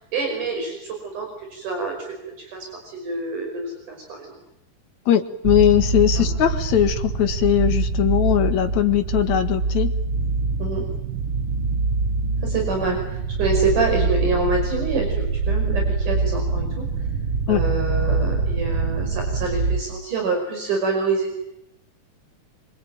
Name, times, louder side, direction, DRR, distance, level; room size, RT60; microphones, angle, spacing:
voice 1, 0.1-4.4 6.2-6.3 10.6-10.8 12.4-16.9 17.5-21.3, right 3 dB, 70° right, 2 dB, 7.0 m, -26 dB
voice 2, 5.1-9.9 17.5-17.6, left 11 dB, 65° left, 8 dB, 2.9 m, -20 dB
sound 1, 5.4-19.8, right 4 dB, 50° right, 1.9 m, -24 dB
25.5 x 25.0 x 9.1 m, 0.84 s
omnidirectional pair, 3.7 m